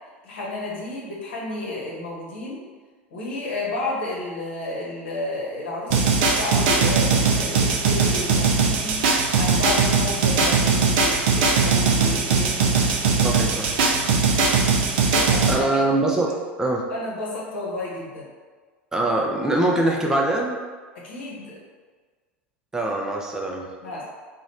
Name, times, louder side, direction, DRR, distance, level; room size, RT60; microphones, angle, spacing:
voice 1, 0.2-2.6 3.1-12.8 14.0-14.3 15.1-15.7 16.9-18.2 20.9-21.6 23.8-24.0, left 2 dB, 65° left, -5 dB, 1.1 m, -32 dB
sound 1, 5.9-15.6, right 4 dB, 55° right, 0.5 m, -20 dB
voice 2, 13.2-13.8 15.5-16.3 16.6-16.8 18.9-20.6 22.7-23.7, right 2 dB, 10° right, -1 dB, 0.6 m, -23 dB
3.0 x 2.5 x 4.2 m, 1.4 s
figure-of-eight pair, 75°, 6 cm